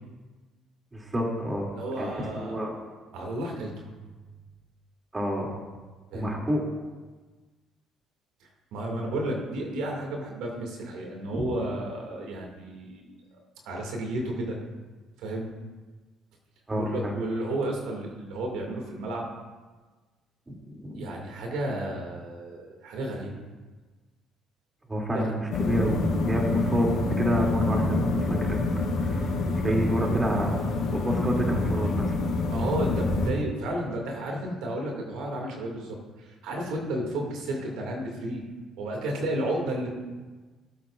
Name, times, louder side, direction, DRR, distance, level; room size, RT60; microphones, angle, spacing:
voice 1, 0.9-1.7 2.0-2.7 5.1-5.5 6.1-6.6 11.3-11.6 16.7-17.1 20.5-21.1 24.9-26.9 27.2-28.6 29.0-30.6 30.9-32.1, equal, 20° right, -1 dB, 2.6 m, -29 dB
voice 2, 1.7-2.6 3.1-3.8 6.1-6.4 8.7-13.0 13.6-14.6 15.2-15.5 16.7-19.3 21.0-23.3 25.1-25.3 32.5-38.4 38.8-39.9, right 1 dB, 80° right, 0 dB, 2.2 m, -32 dB
sound 1, 25.5-33.3, left 3 dB, 80° left, 3.3 m, -27 dB
17.5 x 8.1 x 2.5 m, 1.3 s
supercardioid pair, 75°, 0 cm